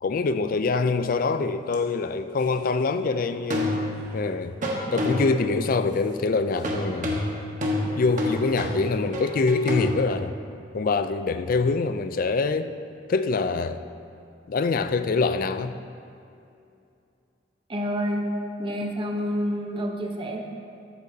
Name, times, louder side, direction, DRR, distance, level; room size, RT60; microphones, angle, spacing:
voice 1, 0.0-3.7 4.1-4.6 4.9-7.2 8.0-10.3 10.7-12.7 13.1-13.8 14.5-15.7, left 4 dB, 50° left, 11 dB, 0.4 m, -24 dB
sound 1, 1.7-1.8 3.5-4.2 4.6-5.5 6.6-10.0, left 1 dB, 45° right, 1.3 m, -28 dB
voice 2, 17.7-18.3 18.6-20.4, equal, 30° right, 1 dB, 0.9 m, -28 dB
13.0 x 8.3 x 2.8 m, 2.6 s
head